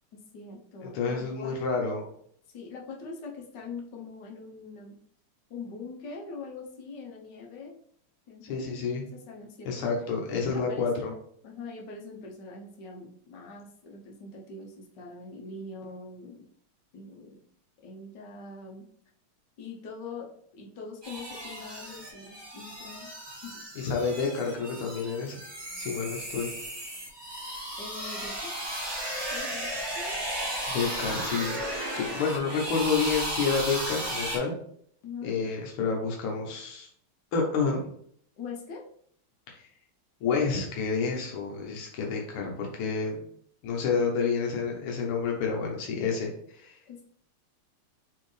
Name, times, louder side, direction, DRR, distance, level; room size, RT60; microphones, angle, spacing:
voice 1, 0.1-1.5 2.5-5.0 5.5-7.8 8.3-8.7 9.3-9.9 10.5-11.1 11.4-16.4 16.9-17.4 17.8-18.9 19.6-23.1 23.4-23.6 27.8-28.5 29.3-29.7 30.0-30.2 35.0-35.4 38.4-38.8 46.9-47.0, left 4 dB, 65° left, 0 dB, 1.3 m, -43 dB
voice 2, 0.8-2.0 8.5-9.0 9.6-11.1 23.8-25.4 25.8-26.5 30.7-31.6 32.0-34.5 35.2-36.9 37.3-37.8 39.5-39.6 40.2-43.2 43.6-46.8, left 5 dB, 85° left, 0 dB, 1.7 m, -29 dB
sound 1, 21.0-34.4, right 1 dB, 30° right, 0.5 m, -35 dB
4.5 x 3.5 x 3.2 m, 0.64 s
omnidirectional pair, 2.3 m